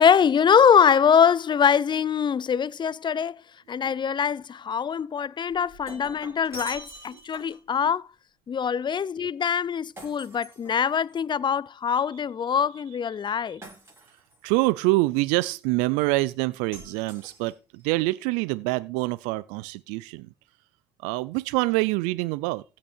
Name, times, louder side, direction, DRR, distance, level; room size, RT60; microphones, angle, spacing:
voice 1, 0.0-3.4 3.7-8.1 8.5-13.6, left 7 dB, 40° left, 0.5 m, -23 dB
Shatter, 5.5-7.7 10.0-11.2 13.6-14.4 16.7-17.8, right 1 dB, 20° right, 7.0 m, -45 dB
voice 2, 14.4-20.3 21.0-22.6, right 21 dB, 85° right, 0.4 m, -25 dB
16.0 x 5.8 x 4.4 m
hypercardioid pair, 60°, 12 cm